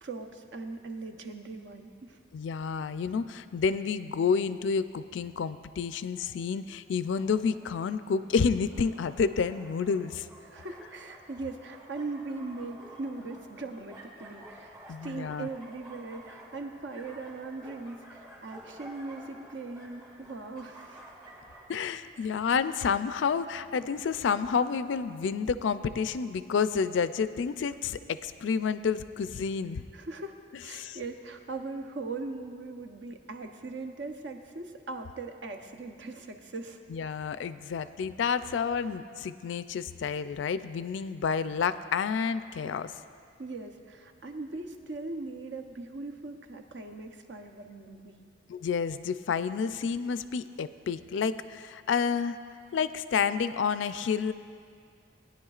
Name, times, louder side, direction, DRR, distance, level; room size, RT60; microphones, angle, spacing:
voice 1, 0.0-2.2 10.4-21.0 22.2-22.3 29.9-36.8 43.4-48.3, right 3 dB, 65° right, 5 dB, 0.8 m, -40 dB
voice 2, 2.3-10.3 14.9-15.5 21.7-29.8 30.8-31.0 36.9-42.9 48.5-52.4 52.7-54.3, left 6 dB, 70° left, 13 dB, 0.3 m, -29 dB
sound 1, 7.0-21.7, right 1 dB, 15° right, 1.7 m, -51 dB
19.0 x 10.0 x 2.4 m, 2.3 s
head